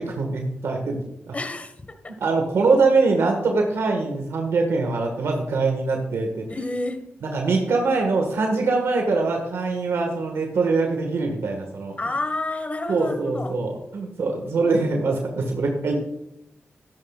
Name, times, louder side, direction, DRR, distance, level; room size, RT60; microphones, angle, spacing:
voice 1, 0.0-1.3 2.1-6.4 7.2-11.9 12.9-15.9, right 3 dB, 90° right, 2 dB, 1.7 m, -23 dB
voice 2, 1.3-2.1 6.5-7.1 12.0-13.6, left 2 dB, 35° left, 8 dB, 1.6 m, -29 dB
12.5 x 11.5 x 2.4 m, 0.80 s
cardioid pair, 60°, 4 cm